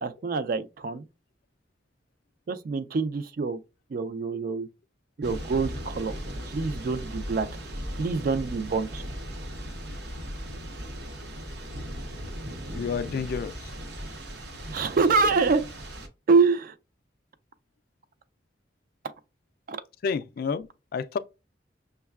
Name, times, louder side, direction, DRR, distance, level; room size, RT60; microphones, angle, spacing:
voice 1, 0.0-1.0 2.5-3.6 3.9-4.7 5.2-6.1 6.5-7.5 8.0-9.0 14.7-15.6 16.3-16.7 19.7-19.8, right 4 dB, 50° right, 0.4 m, -25 dB
Thunder / Rain, 5.2-16.1, equal, 65° right, 0.8 m, -37 dB
voice 2, 12.7-13.5 20.0-20.7 20.9-21.2, left 5 dB, 55° left, 0.3 m, -29 dB
6.2 x 2.2 x 2.3 m
head